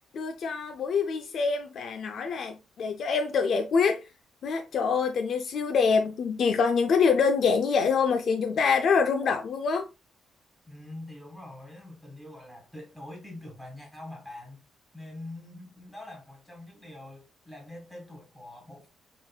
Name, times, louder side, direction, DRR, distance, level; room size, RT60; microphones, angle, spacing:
voice 1, 0.1-4.1 4.4-9.9, left 5 dB, 55° left, 0.4 m, -25 dB
voice 2, 10.7-14.6 14.9-18.9, left 1 dB, ahead, 1.8 m, -44 dB
4.8 x 2.7 x 2.3 m
cardioid pair, 160°, 0 cm